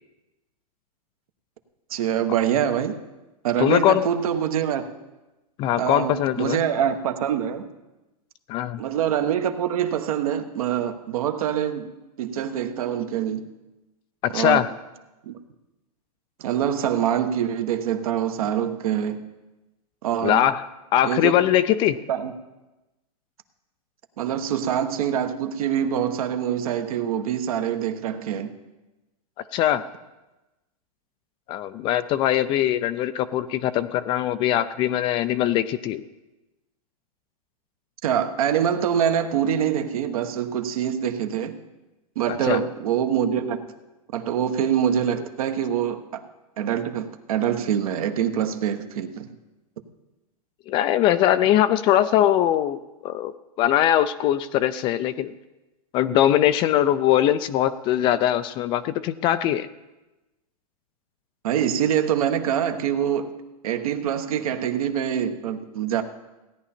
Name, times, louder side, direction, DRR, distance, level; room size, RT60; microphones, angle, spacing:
voice 1, 1.9-3.0 3.4-4.9 5.8-7.7 8.8-11.9 12.2-13.5 14.3-14.6 15.2-15.3 16.4-19.3 20.0-20.4 21.0-21.3 22.1-22.3 24.2-28.6 38.0-41.6 42.1-43.6 44.1-46.2 46.6-49.3 61.4-63.4 63.6-66.0, right 9 dB, 65° right, 7 dB, 1.2 m, -25 dB
voice 2, 3.6-4.1 5.6-6.6 8.5-8.8 14.2-14.7 20.2-22.0 29.5-29.9 31.5-36.0 42.4-42.6 50.7-53.3 53.6-55.3 55.9-59.7, left 12 dB, 25° left, 13 dB, 0.4 m, -21 dB
16.5 x 10.0 x 4.3 m, 1.0 s
hypercardioid pair, 135°, 20 cm